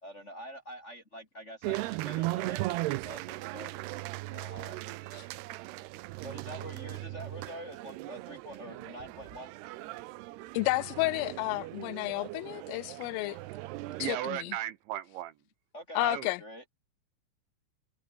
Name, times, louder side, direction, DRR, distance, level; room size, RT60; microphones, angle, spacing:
voice 1, 0.0-3.7 4.3-4.8 6.2-9.5 15.7-16.0 16.4-16.6, equal, 25° left, 1.6 m, -46 dB
sound 1, 1.6-14.1, right 18 dB, 90° right, 2.3 m, -38 dB
voice 2, 10.5-13.4 14.0-14.5 16.0-16.4, left 22 dB, 90° left, 3.2 m, -31 dB
voice 3, 14.0-15.4 16.0-16.3, right 13 dB, 70° right, 3.4 m, -35 dB
omnidirectional pair, 5.8 m